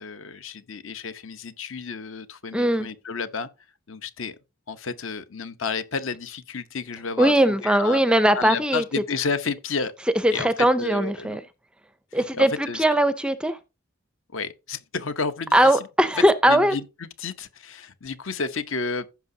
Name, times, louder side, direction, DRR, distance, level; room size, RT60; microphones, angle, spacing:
voice 1, 0.0-3.5 3.9-4.4 4.7-7.3 7.6-8.0 8.3-9.9 10.3-11.4 12.1-12.8 14.3-15.9 16.2-19.1, left 4 dB, 60° left, 0.8 m, -31 dB
voice 2, 2.5-2.9 7.2-8.8 10.2-11.4 12.1-13.6 15.5-16.8, right 1 dB, 5° right, 0.4 m, -20 dB
15.0 x 5.9 x 2.7 m
head